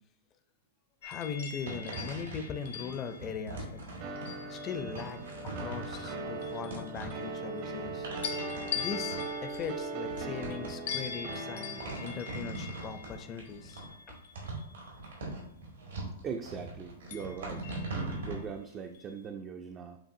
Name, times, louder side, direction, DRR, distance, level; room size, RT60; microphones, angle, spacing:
sound 1, 1.0-5.4 5.9-7.8 8.2-15.2 17.1-18.5 18.9-19.2, left 8 dB, 70° left, 0.9 m, -43 dB
voice 1, 1.0-3.8 4.5-5.2 5.6-8.1 8.7-14.2, left 6 dB, 30° left, 9 dB, 0.5 m, -40 dB
sound 2, 1.6-18.4, right 2 dB, 90° right, 1.8 m, -41 dB
sound 3, 4.0-12.3, right 3 dB, 50° right, 0.7 m, -39 dB
voice 2, 16.2-20.0, right 6 dB, 30° right, 4 dB, 0.3 m, -41 dB
7.3 x 2.5 x 2.7 m, 0.70 s
hypercardioid pair, 120°, 0 cm